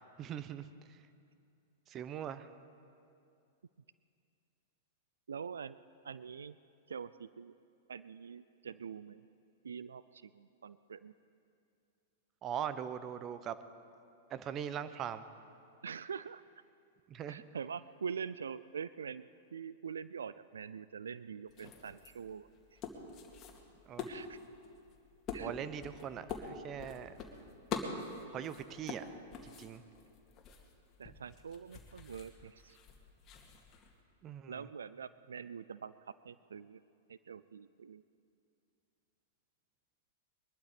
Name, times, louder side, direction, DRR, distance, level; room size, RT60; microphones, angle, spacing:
voice 1, 0.2-0.7 1.9-2.5 12.4-13.6 14.3-15.3 17.1-17.4 23.9-24.1 25.4-27.1 28.3-29.0 29.4-29.8 34.2-34.7, right 9 dB, 30° right, 13 dB, 0.8 m, -41 dB
voice 2, 5.3-5.8 6.0-6.6 6.9-7.5 7.9-9.2 9.6-11.1 15.8-16.4 17.3-22.8 24.1-24.4 25.3-25.5 26.8-26.9 31.0-32.8 34.5-36.8 37.1-38.0, right 6 dB, 90° right, 16 dB, 0.3 m, -44 dB
sound 1, 21.5-34.0, left 5 dB, 35° left, 2.3 m, -46 dB
22.0 x 12.0 x 5.1 m, 2.5 s
hypercardioid pair, 115°, 0 cm